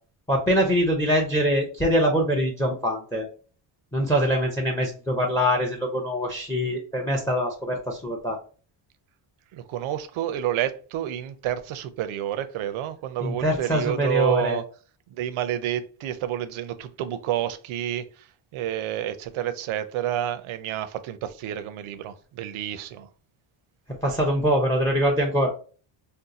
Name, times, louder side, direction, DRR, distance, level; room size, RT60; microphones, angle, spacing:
voice 1, 0.3-3.3 3.9-8.4 13.2-14.6 24.0-25.5, equal, 5° left, 0.4 m, -23 dB
voice 2, 9.5-14.6 15.2-18.0 18.5-23.1, right 11 dB, 75° right, 0.6 m, -29 dB
2.6 x 2.2 x 3.9 m
cardioid pair, 125°, 49 cm